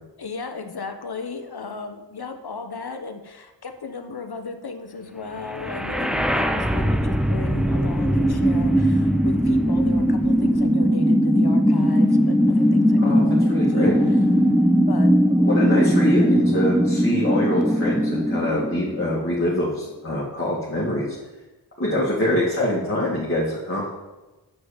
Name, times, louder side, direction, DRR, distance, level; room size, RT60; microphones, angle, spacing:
voice 1, 0.2-14.2 14.9-15.1, left 4 dB, 55° left, 7 dB, 1.1 m, -35 dB
sound 1, 5.5-19.5, equal, ahead, 0.7 m, -19 dB
voice 2, 13.0-13.9 15.4-21.2 21.8-23.9, left 1 dB, 30° left, -6 dB, 2.2 m, -24 dB
6.4 x 6.1 x 7.4 m, 1.1 s
cardioid pair, 40°, 45 cm